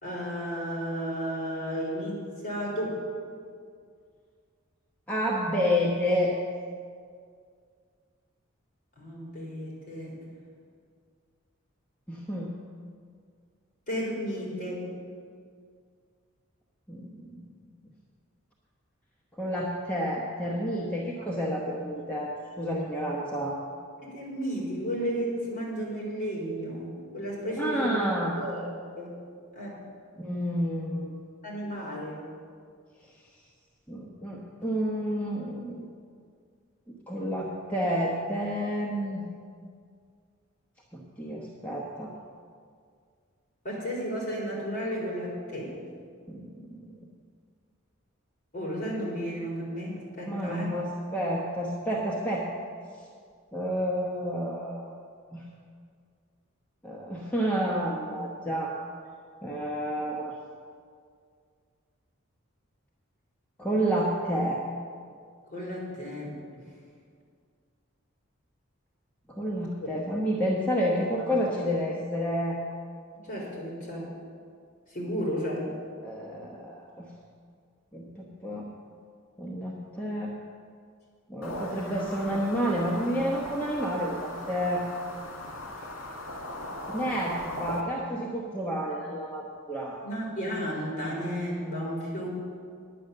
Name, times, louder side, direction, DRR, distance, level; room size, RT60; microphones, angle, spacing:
voice 1, 0.0-3.0 9.0-10.1 13.9-14.9 24.0-28.1 28.3-28.6 29.0-29.2 29.6-29.8 31.4-32.2 43.6-45.7 48.5-50.7 65.5-66.6 73.2-74.1 74.9-75.7 87.0-87.3 90.0-92.3, equal, 40° left, -5 dB, 3.8 m, -33 dB
voice 2, 5.1-6.3 12.1-12.5 16.9-17.4 19.4-23.6 27.6-28.5 30.2-31.1 33.9-35.9 37.1-39.3 40.9-42.1 46.3-46.9 50.2-52.5 53.0-53.1 53.5-54.9 55.3-55.4 56.8-58.7 59.4-60.4 63.6-64.6 69.3-72.6 76.0-77.1 77.9-78.7 79.4-80.3 81.3-84.9 86.9-90.0, equal, 10° left, -4 dB, 1.0 m, -30 dB
sound 1, 81.4-87.8, left 1 dB, 85° left, 2.0 m, -39 dB
10.0 x 9.4 x 6.7 m, 2.2 s
head